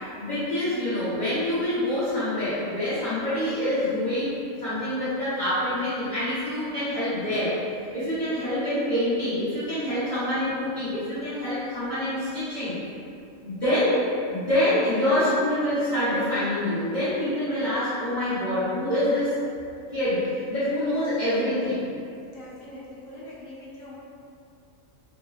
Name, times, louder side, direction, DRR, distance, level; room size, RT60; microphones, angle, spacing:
voice 1, 0.2-4.4 4.6-7.5 7.9-12.8 13.4-19.3 19.9-21.8, left 1 dB, 40° left, -15 dB, 0.8 m, -26 dB
voice 2, 22.3-24.0, left 1 dB, 75° left, -6 dB, 1.0 m, -43 dB
4.0 x 2.0 x 2.3 m, 2.5 s
omnidirectional pair, 1.4 m